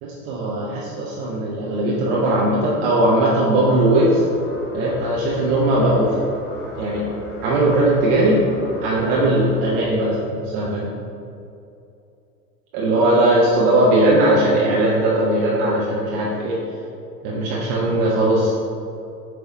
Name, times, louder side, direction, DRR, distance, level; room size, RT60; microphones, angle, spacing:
voice 1, 0.0-4.2 4.7-6.2 6.8-7.0 7.4-8.4 8.8-10.9 12.7-16.6 17.2-18.5, right 1 dB, 20° right, -4 dB, 0.4 m, -19 dB
sound 1, 4.2-9.8, left 2 dB, 40° left, 1.2 m, -34 dB
7.6 x 3.5 x 3.9 m, 2.6 s
figure-of-eight pair, 100°, 48 cm